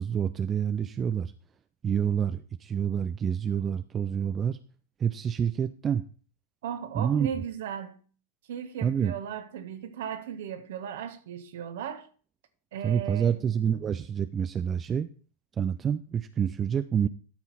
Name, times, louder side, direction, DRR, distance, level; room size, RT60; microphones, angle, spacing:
voice 1, 0.0-1.3 1.8-4.6 5.0-6.0 7.0-7.3 8.8-9.2 12.8-15.1 15.6-17.1, right 8 dB, 25° right, 12 dB, 0.4 m, -27 dB
voice 2, 6.6-8.0 8.5-12.1 12.7-13.4, right 9 dB, 55° right, 9 dB, 1.2 m, -36 dB
13.0 x 5.7 x 4.1 m, 0.40 s
figure-of-eight pair, 90°, 0 cm